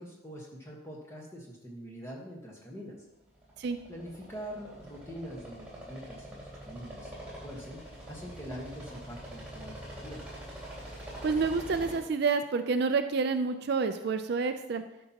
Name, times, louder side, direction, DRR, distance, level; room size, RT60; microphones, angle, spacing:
voice 1, 0.0-3.0 3.9-7.8 8.1-10.2, equal, 15° left, -2 dB, 1.4 m, -44 dB
sound 1, 3.3-12.0, right 1 dB, 10° right, 3.1 m, -44 dB
voice 2, 11.2-14.8, right 4 dB, 55° right, 8 dB, 0.4 m, -28 dB
11.5 x 5.4 x 2.9 m, 0.92 s
head